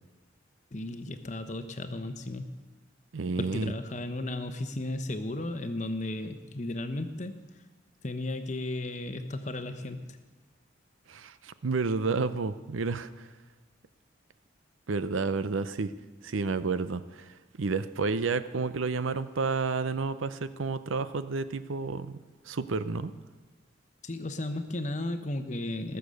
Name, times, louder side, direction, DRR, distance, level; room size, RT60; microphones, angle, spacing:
voice 1, 0.7-2.6 3.4-7.4 8.0-10.2 24.0-26.0, left 1 dB, 35° left, 8 dB, 0.9 m, -34 dB
voice 2, 3.1-3.7 11.1-13.3 14.9-15.9 16.2-22.2 22.5-23.1, right 4 dB, 85° right, 13 dB, 0.6 m, -30 dB
20.5 x 6.9 x 6.4 m, 1.3 s
head